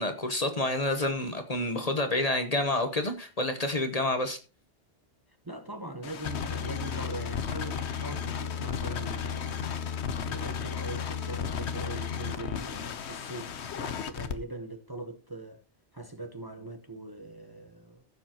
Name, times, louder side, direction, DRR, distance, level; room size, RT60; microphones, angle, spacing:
voice 1, 0.0-4.4, left 2 dB, 35° left, 1.1 m, -28 dB
voice 2, 5.4-9.9 10.3-15.6 15.9-18.0, right 2 dB, 20° right, 0.9 m, -41 dB
sound 1, 6.0-14.3, left 7 dB, 80° left, 1.1 m, -34 dB
15.5 x 7.2 x 2.9 m
omnidirectional pair, 1.1 m